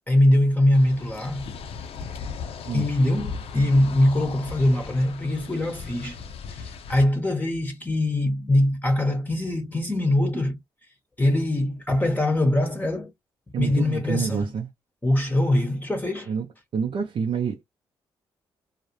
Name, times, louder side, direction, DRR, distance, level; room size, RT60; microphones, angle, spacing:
voice 1, 0.1-1.5 2.7-6.2 6.5-10.6 11.2-13.1 13.6-14.5 15.0-16.3, left 1 dB, 15° left, 0.8 m, -22 dB
sound 1, 0.7-7.0, left 5 dB, 70° left, 0.5 m, -37 dB
voice 2, 13.5-14.7 16.3-16.5 16.7-17.6, right 6 dB, 60° right, 0.5 m, -27 dB
2.3 x 2.0 x 2.9 m
supercardioid pair, 50°, 10 cm